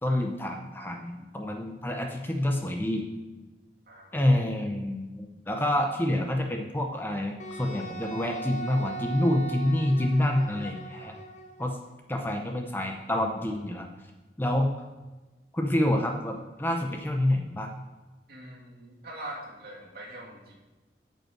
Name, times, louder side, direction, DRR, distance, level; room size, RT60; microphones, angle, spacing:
voice 1, 0.0-3.0 4.1-11.1 11.6-11.8 12.1-13.9 14.4-14.7 15.5-17.7, left 1 dB, 10° left, 3 dB, 0.6 m, -27 dB
voice 2, 3.9-4.3 18.3-20.5, right 1 dB, 55° right, -4 dB, 2.5 m, -43 dB
Wind instrument woodwind instrument, 7.4-11.7, right 3 dB, 40° left, 0.8 m, -39 dB
8.8 x 5.5 x 6.0 m, 1.2 s
head